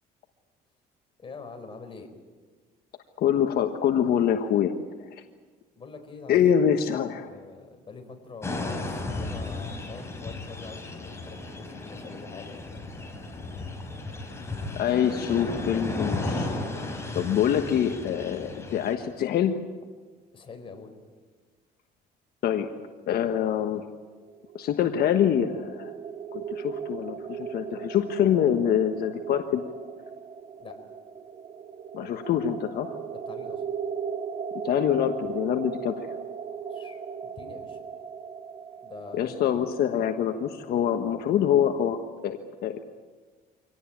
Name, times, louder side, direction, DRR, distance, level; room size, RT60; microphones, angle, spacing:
voice 1, 1.2-2.1 5.7-6.5 6.8-12.7 20.3-20.9 30.6-30.8 33.1-33.6 36.7-37.8 38.8-39.5, left 4 dB, 30° left, 4 dB, 4.6 m, -44 dB
voice 2, 3.2-4.7 6.3-7.3 14.8-16.5 17.1-19.6 22.4-22.7 23.1-23.9 24.5-25.9 26.3-29.6 31.9-33.0 34.6-35.9 39.1-42.0 42.2-42.8, left 9 dB, 65° left, 6 dB, 1.4 m, -25 dB
sound 1, 8.4-18.9, left 2 dB, 15° left, 4.9 m, -34 dB
sound 2, 24.2-41.1, right 6 dB, 45° right, 1.9 m, -38 dB
25.5 x 18.0 x 8.9 m, 1.4 s
cardioid pair, 110°, 17 cm